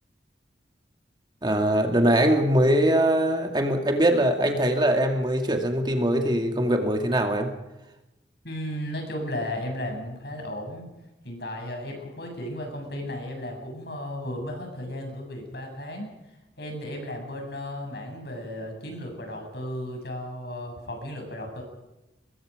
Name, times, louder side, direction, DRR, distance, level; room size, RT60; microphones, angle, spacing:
voice 1, 1.4-7.5, right 1 dB, 25° right, 4 dB, 2.3 m, -22 dB
voice 2, 8.4-10.9 11.2-16.1 16.6-21.6, left 1 dB, 60° left, 3 dB, 7.7 m, -34 dB
24.5 x 21.5 x 5.1 m, 0.98 s
head